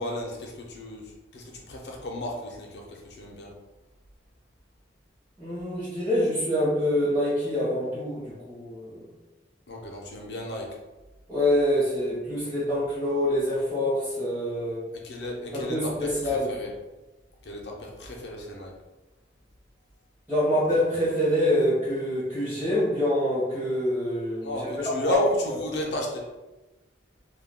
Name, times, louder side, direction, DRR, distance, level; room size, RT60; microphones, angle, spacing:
voice 1, 0.0-3.5 9.7-10.7 15.0-16.7 17.4-18.7 24.4-26.2, left 1 dB, 65° left, 0 dB, 0.6 m, -33 dB
voice 2, 5.4-9.0 11.3-14.8 15.5-16.5 20.3-24.7 25.0-25.2, left 1 dB, 5° right, -13 dB, 0.8 m, -26 dB
2.3 x 2.2 x 3.4 m, 1.1 s
head